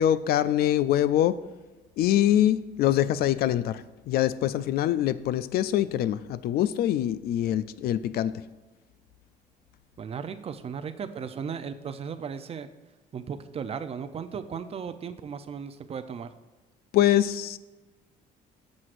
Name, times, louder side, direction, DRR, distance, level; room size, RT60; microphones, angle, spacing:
voice 1, 0.0-1.4 2.0-8.3 16.9-17.6, left 12 dB, 65° left, 15 dB, 0.4 m, -24 dB
voice 2, 10.0-12.7 13.1-16.3, right 6 dB, 35° right, 11 dB, 0.5 m, -36 dB
13.5 x 6.3 x 2.5 m, 1.2 s
cardioid pair, 110°, 17 cm